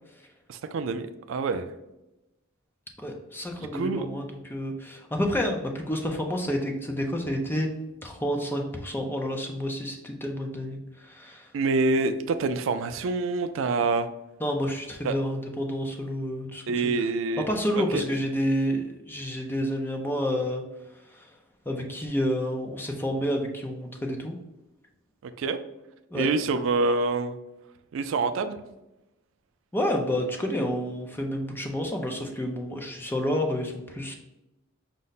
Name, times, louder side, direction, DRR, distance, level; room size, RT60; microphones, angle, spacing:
voice 1, 0.5-1.7 3.7-4.1 11.5-14.1 15.0-15.2 16.7-17.5 17.9-18.0 25.2-25.6 26.1-27.4 27.9-28.6, right 3 dB, 70° right, 10 dB, 0.3 m, -26 dB
voice 2, 3.0-7.7 8.0-11.5 14.4-16.9 17.4-20.6 21.1-21.3 21.7-24.4 26.1-26.3 29.7-34.2, equal, 10° left, 2 dB, 0.4 m, -29 dB
5.2 x 2.1 x 4.0 m, 0.94 s
head